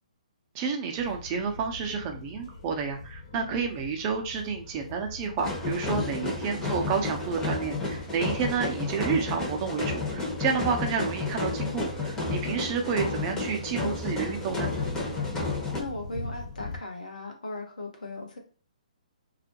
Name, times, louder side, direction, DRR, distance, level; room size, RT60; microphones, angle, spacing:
voice 1, 0.5-14.7, right 5 dB, 30° right, 3 dB, 0.6 m, -30 dB
sound 1, 1.0-16.8, left 3 dB, 50° left, 1.1 m, -43 dB
voice 2, 3.3-3.7 6.0-6.4 15.8-18.4, left 2 dB, 80° left, 1 dB, 0.9 m, -38 dB
sound 2, 5.4-15.8, left 3 dB, 15° left, 0.8 m, -31 dB
2.4 x 2.1 x 2.8 m, 0.39 s
figure-of-eight pair, 135°, 4 cm